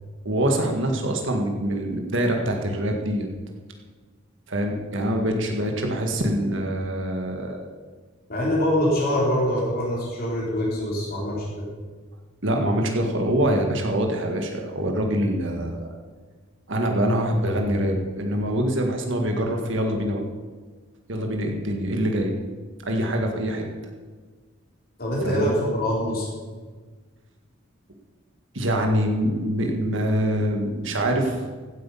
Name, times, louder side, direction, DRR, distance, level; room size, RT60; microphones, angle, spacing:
voice 1, 0.3-3.3 4.5-7.7 12.4-15.9 16.7-20.2 21.1-22.3 22.8-23.6 25.2-25.5 28.5-31.4, equal, 60° right, 2 dB, 1.8 m, -24 dB
voice 2, 8.3-11.7 25.0-26.3, equal, 45° left, -4 dB, 3.7 m, -24 dB
15.5 x 8.7 x 5.6 m, 1.4 s
head